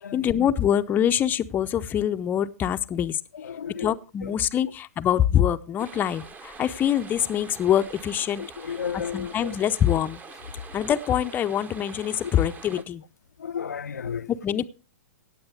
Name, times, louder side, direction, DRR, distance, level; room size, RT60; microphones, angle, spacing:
voice 1, 0.1-3.2 3.8-10.2 10.7-13.0 14.1-14.6, left 10 dB, 20° left, 0.5 m, -25 dB
voice 2, 3.4-3.9 4.2-4.3 8.4-9.6 13.4-14.3, left 7 dB, 75° left, 0.5 m, -33 dB
sound 1, 5.8-12.8, right 4 dB, 15° right, 0.9 m, -45 dB
17.5 x 7.9 x 3.4 m
figure-of-eight pair, 110°, 9 cm